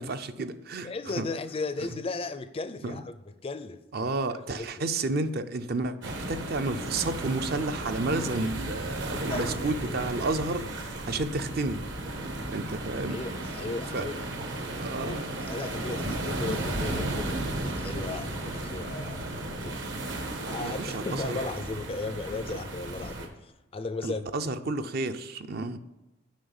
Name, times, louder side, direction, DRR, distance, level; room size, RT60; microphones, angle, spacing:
voice 1, 0.0-1.3 2.8-3.0 3.9-11.8 12.5-13.2 13.9-14.1 14.8-15.3 20.6-21.3 24.0-25.8, right 3 dB, 50° right, 0.5 m, -31 dB
voice 2, 0.8-3.1 3.4-4.7 8.9-10.1 13.1-14.3 15.0-19.8 20.5-24.3, left 3 dB, 30° left, 0.4 m, -36 dB
sound 1, 6.0-23.3, right 1 dB, 65° right, 1.3 m, -34 dB
7.4 x 5.5 x 7.1 m
head